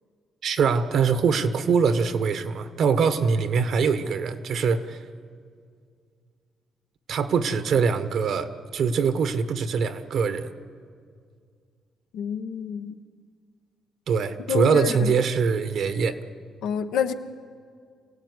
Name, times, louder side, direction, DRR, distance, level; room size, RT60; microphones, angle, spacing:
voice 1, 0.4-5.0 7.1-10.5 14.1-16.2, right 5 dB, 65° right, 10 dB, 1.4 m, -23 dB
voice 2, 12.1-13.0 14.5-15.1 16.6-17.1, left 7 dB, 90° left, 6 dB, 1.2 m, -28 dB
26.0 x 17.0 x 9.7 m, 2.2 s
cardioid pair, 90°, 0 cm